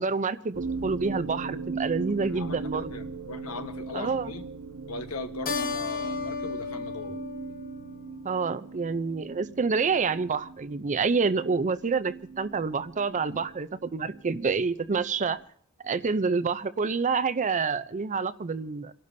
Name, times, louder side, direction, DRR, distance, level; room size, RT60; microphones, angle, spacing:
voice 1, 0.0-3.0 3.9-4.3 8.2-15.4 15.8-18.9, right 4 dB, 35° right, 14 dB, 0.5 m, -28 dB
sound 1, 0.5-15.4, right 4 dB, 65° right, 1.0 m, -39 dB
voice 2, 2.3-4.4 4.9-7.2 13.3-13.4, left 3 dB, 75° left, 7 dB, 1.2 m, -39 dB
Keyboard (musical), 5.5-8.3, left 5 dB, 40° left, 0.9 m, -34 dB
29.5 x 12.0 x 2.7 m, 0.62 s
head